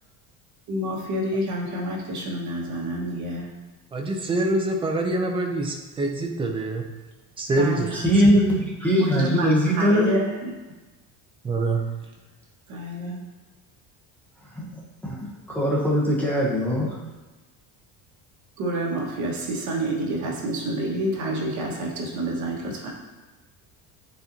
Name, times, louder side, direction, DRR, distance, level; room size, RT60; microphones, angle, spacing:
voice 1, 0.7-3.5 7.6-8.3 9.0-10.5 12.7-13.2 18.6-22.9, right 1 dB, 45° right, -2 dB, 1.4 m, -28 dB
voice 2, 3.9-6.8 7.4-7.9 11.4-11.9, right 2 dB, 15° right, 3 dB, 0.4 m, -25 dB
voice 3, 7.9-10.1 14.5-15.2 15.5-17.0, equal, 5° left, -6 dB, 1.0 m, -21 dB
9.3 x 4.4 x 2.7 m, 1.2 s
cardioid pair, 175°, 39 cm